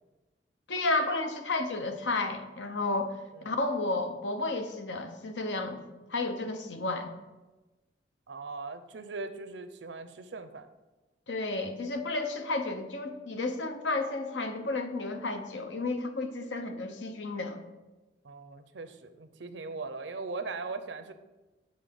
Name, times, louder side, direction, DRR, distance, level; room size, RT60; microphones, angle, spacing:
voice 1, 0.7-3.1 3.4-5.8 6.1-7.1 11.3-17.6, left 2 dB, 90° left, 6 dB, 0.9 m, -32 dB
voice 2, 8.3-10.7 18.2-21.1, right 3 dB, 85° right, 10 dB, 0.6 m, -39 dB
8.0 x 4.1 x 5.3 m, 1.1 s
head